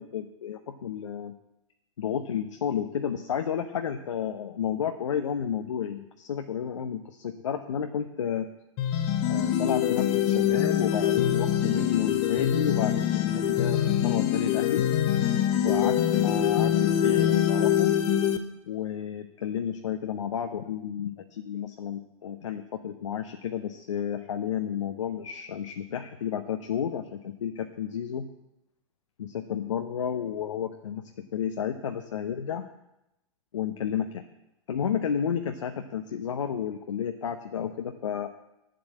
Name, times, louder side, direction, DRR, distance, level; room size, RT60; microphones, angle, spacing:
voice 1, 0.0-1.3 2.0-8.5 9.3-14.8 15.6-17.9 18.7-28.2 29.2-31.0 31.3-32.6 33.5-34.2 34.7-38.3, left 8 dB, 70° left, 5 dB, 0.9 m, -31 dB
sound 1, 8.8-18.4, left 10 dB, 40° left, 1.0 m, -24 dB
9.7 x 7.8 x 8.1 m, 0.90 s
figure-of-eight pair, 105°, 16 cm